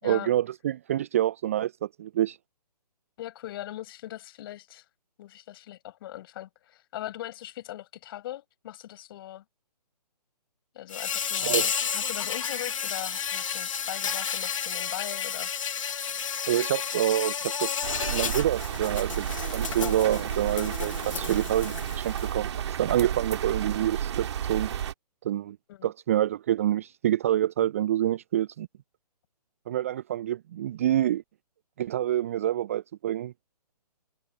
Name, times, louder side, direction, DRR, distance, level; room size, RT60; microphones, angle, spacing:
voice 1, 0.0-2.4 11.4-11.7 16.5-17.8 18.1-24.7 25.2-25.6 25.8-28.7 29.7-31.2 31.8-33.3, right 12 dB, 20° right, 0.4 m, -27 dB
voice 2, 3.2-4.8 5.2-9.4 10.7-15.5 25.7-25.9, left 13 dB, 35° left, 6.2 m, -40 dB
Insect, 10.9-22.3, left 7 dB, 50° left, 2.1 m, -32 dB
sound 1, 17.8-24.9, right 9 dB, 40° right, 2.0 m, -32 dB
figure-of-eight pair, 140°, 21 cm